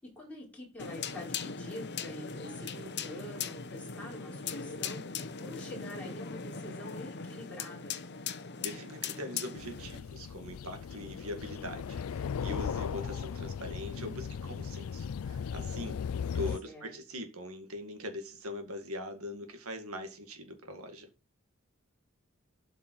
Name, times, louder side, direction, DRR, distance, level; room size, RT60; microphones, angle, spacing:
voice 1, 0.0-8.0 16.6-16.9, left 1 dB, 5° left, 5.2 m, -46 dB
sound 1, 0.8-10.0, left 6 dB, 50° left, 0.9 m, -39 dB
voice 2, 8.6-16.0 16.3-21.1, left 1 dB, 80° right, 2.0 m, -42 dB
sound 2, 9.6-16.6, left 7 dB, 80° left, 0.4 m, -37 dB
12.0 x 5.5 x 4.7 m
head